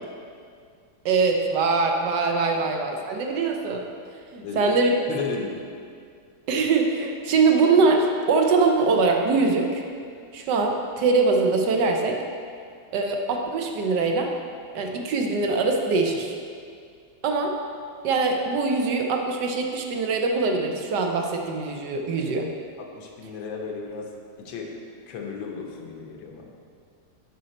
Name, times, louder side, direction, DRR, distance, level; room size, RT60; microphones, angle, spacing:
voice 1, 1.0-3.9 4.3-4.9 6.5-9.8 10.3-12.2 12.9-14.3 14.7-16.3 17.2-17.5 18.0-22.5, right 4 dB, 70° right, 2 dB, 1.3 m, -22 dB
voice 2, 4.4-4.8 5.1-5.6 22.8-24.8 25.1-26.5, left 5 dB, 90° left, 1 dB, 1.6 m, -34 dB
7.8 x 5.4 x 4.2 m, 2.2 s
omnidirectional pair, 2.0 m